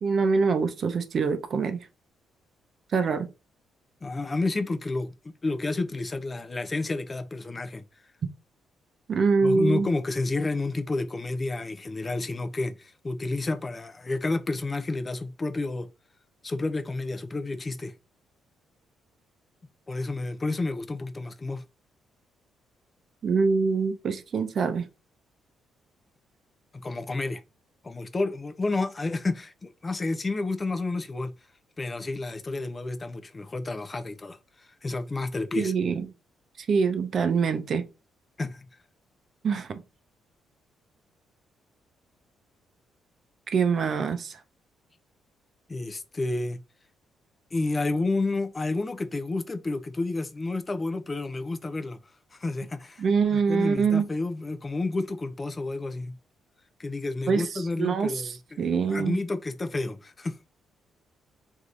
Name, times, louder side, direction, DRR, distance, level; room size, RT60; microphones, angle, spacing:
voice 1, 0.0-1.9 2.9-3.3 9.1-9.9 23.2-24.9 35.5-36.1 36.7-37.9 39.4-39.8 43.5-44.4 53.0-54.1 57.3-58.3 58.6-59.2, right 5 dB, 50° right, 0.6 m, -24 dB
voice 2, 4.0-7.8 9.4-15.9 16.4-17.9 19.9-21.6 26.7-27.4 27.8-31.3 31.8-35.7 38.4-38.7 45.7-46.6 47.5-52.0 52.3-53.0 53.3-56.2 56.8-58.6 58.9-60.4, left 2 dB, 25° left, 0.4 m, -30 dB
3.3 x 2.7 x 2.4 m
cardioid pair, 90°, 0 cm